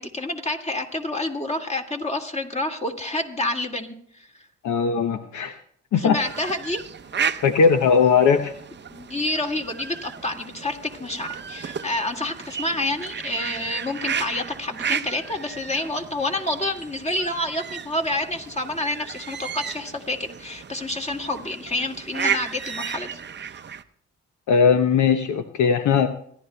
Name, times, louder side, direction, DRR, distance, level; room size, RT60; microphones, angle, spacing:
voice 1, 0.0-4.5 6.0-6.8 8.9-23.5, left 1 dB, 20° left, 4 dB, 2.0 m, -28 dB
voice 2, 4.6-5.5 5.9-6.2 7.4-8.5 24.5-26.1, left 6 dB, 65° left, 8 dB, 0.8 m, -19 dB
sound 1, 6.1-23.8, right 7 dB, 35° right, 0.7 m, -33 dB
26.5 x 11.5 x 2.2 m, 0.67 s
hypercardioid pair, 50°, 33 cm